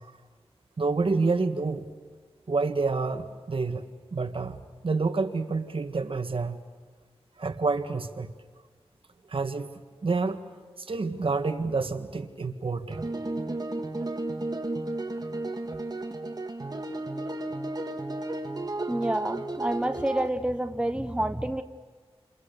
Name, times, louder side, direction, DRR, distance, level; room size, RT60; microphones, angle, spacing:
voice 1, 0.8-1.9 2.5-3.8 4.1-6.6 7.4-8.3 9.3-9.7 10.0-10.4 10.8-13.0, right 4 dB, 60° right, 7 dB, 1.7 m, -28 dB
sound 1, 12.9-20.3, right 2 dB, 40° right, 1.9 m, -33 dB
voice 2, 18.9-21.6, right 1 dB, 10° right, 8 dB, 1.0 m, -28 dB
29.5 x 27.5 x 6.9 m, 1.5 s
wide cardioid pair, 80°, 11 cm